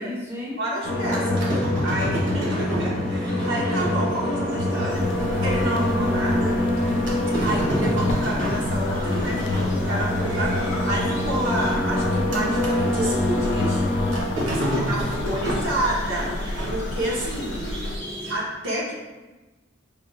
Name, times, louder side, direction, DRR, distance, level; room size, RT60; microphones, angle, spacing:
voice 1, 0.0-0.6 9.3-10.3 14.4-14.9 15.4-16.4, left 2 dB, 10° right, -4 dB, 0.7 m, -35 dB
voice 2, 0.6-1.4 1.8-5.0 5.4-6.6 7.4-9.3 9.9-10.5 10.8-13.8 14.3-16.3 16.7-17.8 18.3-18.9, right 1 dB, 90° right, -5 dB, 1.1 m, -29 dB
sound 1, 0.8-14.2, left 1 dB, 40° left, 0.7 m, -25 dB
sound 2, 0.9-12.8 13.1-18.3, equal, 65° right, 1.0 m, -31 dB
sound 3, 4.9-18.0, left 2 dB, 60° left, 0.3 m, -33 dB
4.9 x 2.3 x 3.1 m, 1.2 s
head